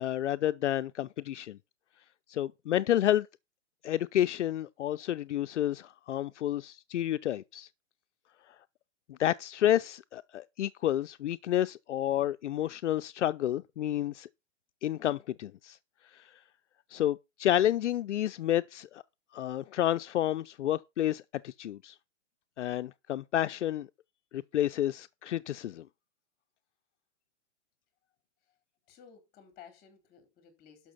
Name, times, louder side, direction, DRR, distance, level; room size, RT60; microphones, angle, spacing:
voice 1, 0.0-1.6 2.3-3.3 3.8-7.7 9.1-14.3 14.8-15.8 16.9-19.0 19.3-21.9 22.6-23.9 24.3-25.8, left 12 dB, 75° left, 0.7 m, -30 dB
voice 2, 28.9-30.9, left 7 dB, 25° left, 4.3 m, -55 dB
12.0 x 6.1 x 5.6 m
hypercardioid pair, 150°, 36 cm